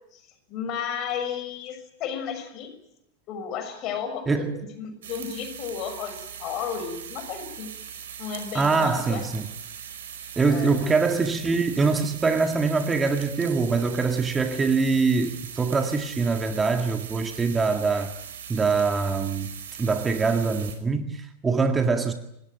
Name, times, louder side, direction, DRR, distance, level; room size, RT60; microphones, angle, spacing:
voice 1, 0.5-2.7 3.3-7.7 8.2-9.3 10.5-10.9, left 7 dB, 35° left, 6.5 m, -33 dB
voice 2, 4.3-4.6 8.5-9.5 10.4-18.1 18.5-19.5 19.8-22.1, right 4 dB, 15° right, 1.8 m, -24 dB
sound 1, 5.0-20.8, right 8 dB, 60° right, 5.0 m, -40 dB
26.5 x 20.0 x 9.1 m
figure-of-eight pair, 90°, 0 cm